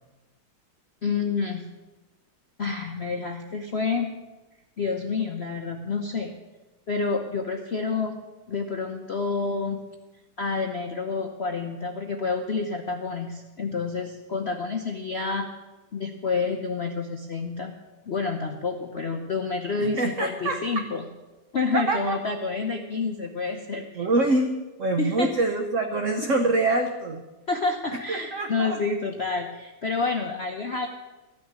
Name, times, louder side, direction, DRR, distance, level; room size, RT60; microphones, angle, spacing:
voice 1, 1.0-1.6 2.6-4.1 4.8-6.3 6.9-8.2 8.5-9.8 10.4-15.5 15.9-17.8 18.1-21.0 21.5-24.1 25.0-25.3 27.5-30.9, left 4 dB, 70° left, 4 dB, 0.6 m, -28 dB
voice 2, 19.8-20.6 21.7-22.2 23.9-24.5 24.8-27.2 27.9-28.8, right 2 dB, 55° right, 5 dB, 0.9 m, -25 dB
14.0 x 6.4 x 9.7 m, 1.2 s
omnidirectional pair, 2.3 m